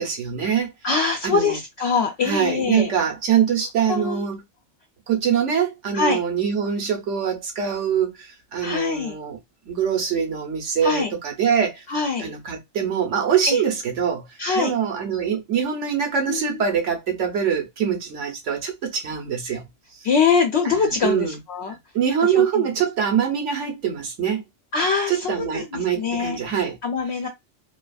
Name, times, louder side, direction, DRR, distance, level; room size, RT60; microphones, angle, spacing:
voice 1, 0.0-0.7 1.2-1.6 2.2-4.4 5.1-9.4 9.7-11.8 12.2-14.3 14.5-19.7 20.6-21.4 21.7-24.4 25.1-26.8, right 8 dB, 75° right, 1.2 m, -24 dB
voice 2, 0.8-2.9 3.9-4.2 5.9-6.2 8.6-9.2 10.8-11.1 11.9-12.3 13.5-13.6 14.4-14.8 16.3-16.6 20.0-21.7 22.2-22.4 24.7-26.4 26.8-27.3, left 5 dB, 65° left, 0.9 m, -23 dB
2.8 x 2.4 x 2.3 m
omnidirectional pair, 1.2 m